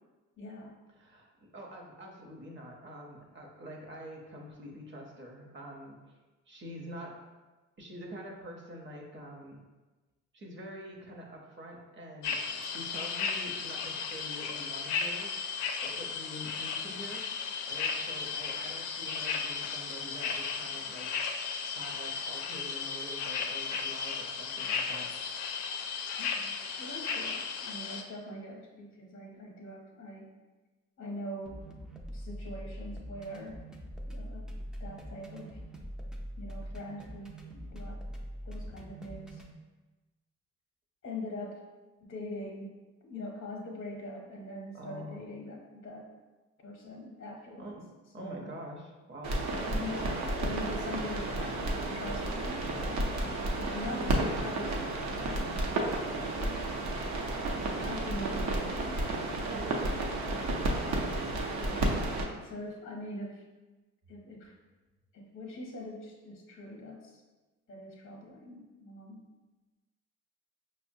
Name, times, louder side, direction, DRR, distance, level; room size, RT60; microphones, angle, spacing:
voice 1, 0.4-0.8 26.2-30.3 31.0-31.6 32.1-33.6 34.1-34.5 34.8-35.6 36.4-38.0 38.4-39.4 41.0-41.6 42.0-46.1 46.6-47.8 48.2-48.5 49.5-53.1 53.5-56.7 57.8-59.6 61.6-63.4 64.1-64.5 65.1-67.2 67.7-69.3, left 1 dB, 45° left, 0 dB, 0.7 m, -43 dB
voice 2, 1.0-6.2 6.5-7.2 7.8-9.6 10.3-15.3 15.8-17.3 17.7-21.1 21.7-25.1 44.7-45.3 47.5-47.9 48.1-49.4 49.7-50.0 59.4-59.9, equal, 40° right, 0 dB, 0.8 m, -46 dB
sound 1, 12.2-28.0, left 5 dB, 90° left, 0.5 m, -35 dB
sound 2, 31.5-39.5, equal, ahead, 0.4 m, -43 dB
sound 3, 49.2-62.2, right 2 dB, 70° right, 0.7 m, -32 dB
5.4 x 2.1 x 2.6 m, 1.2 s
cardioid pair, 90°, 30 cm